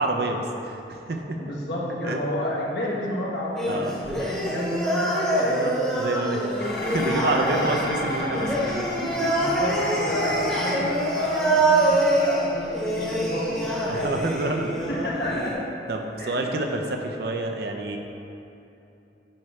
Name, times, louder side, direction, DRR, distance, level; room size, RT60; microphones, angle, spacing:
voice 1, 0.0-1.5 2.0-2.2 3.7-4.2 5.4-9.3 10.2-10.4 13.8-14.7 15.9-18.0, right 2 dB, 65° right, 3 dB, 0.6 m, -28 dB
voice 2, 1.4-5.6 9.3-14.1 14.9-15.7 16.2-16.5, left 1 dB, 70° left, -4 dB, 1.3 m, -30 dB
sound 1, 3.6-15.5, right 1 dB, 5° left, 1.0 m, -25 dB
Dishes pots and pans, 6.6-15.4, left 1 dB, 55° left, 0.9 m, -34 dB
8.8 x 3.2 x 4.9 m, 2.8 s
head